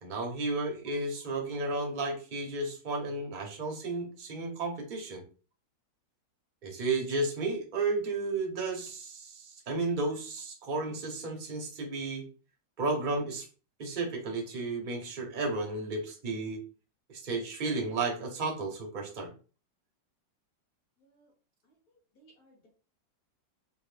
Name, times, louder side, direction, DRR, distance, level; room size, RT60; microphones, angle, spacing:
voice 1, 0.0-5.2 6.6-12.2 12.8-13.5 13.8-16.6 17.1-19.3, right 3 dB, 40° right, 1 dB, 0.7 m, -33 dB
voice 2, 22.2-22.7, right 2 dB, 55° left, -3 dB, 1.9 m, -62 dB
3.8 x 2.2 x 3.3 m, 0.37 s
omnidirectional pair, 2.0 m